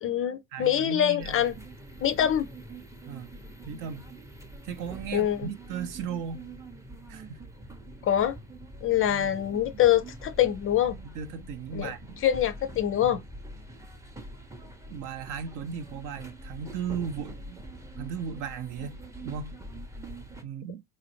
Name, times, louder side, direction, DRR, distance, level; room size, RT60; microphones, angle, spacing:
voice 1, 0.0-1.5 2.0-2.5 5.1-5.5 8.0-8.4 8.8-11.0 11.7-11.9 12.2-13.2, left 11 dB, 35° left, 0.4 m, -24 dB
voice 2, 0.5-1.4 3.1-3.3 3.7-4.1 4.6-6.5 7.1-7.5 9.1-9.4 11.0-12.2 13.0-13.2 14.9-17.6 18.0-19.0 19.2-19.6 20.4-20.8, right 7 dB, 50° right, 0.7 m, -36 dB
sound 1, 1.2-20.4, right 1 dB, 10° right, 0.6 m, -44 dB
4.1 x 2.4 x 2.9 m
supercardioid pair, 95°, 39 cm